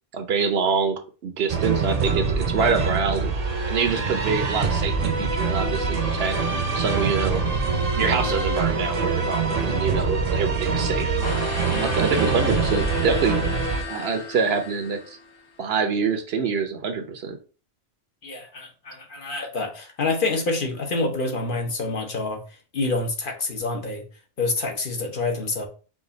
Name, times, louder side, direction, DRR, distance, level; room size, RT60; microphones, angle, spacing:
voice 1, 0.1-3.3 3.7-6.4 6.7-7.4 7.9-11.1 11.6-13.4 13.9-15.2 15.6-17.4, right 5 dB, 70° right, 6 dB, 0.9 m, -25 dB
sound 1, 1.5-13.8, right 4 dB, 45° right, 0.7 m, -24 dB
sound 2, 11.2-15.4, left 3 dB, 85° left, 1.4 m, -34 dB
voice 2, 18.2-22.4 22.7-24.0 24.4-25.7, left 3 dB, 55° left, 3 dB, 1.0 m, -27 dB
4.9 x 2.3 x 3.8 m, 0.36 s
omnidirectional pair, 1.1 m